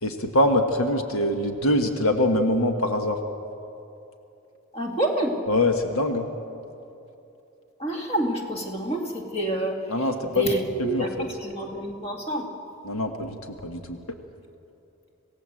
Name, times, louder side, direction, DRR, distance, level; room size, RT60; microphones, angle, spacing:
voice 1, 0.0-3.2 5.5-6.3 9.9-10.5 10.8-11.1 12.9-14.0, left 1 dB, 75° left, 5 dB, 1.5 m, -24 dB
voice 2, 4.7-5.4 7.8-12.5, right 1 dB, 30° left, 1 dB, 2.2 m, -28 dB
26.5 x 17.0 x 7.7 m, 2.8 s
head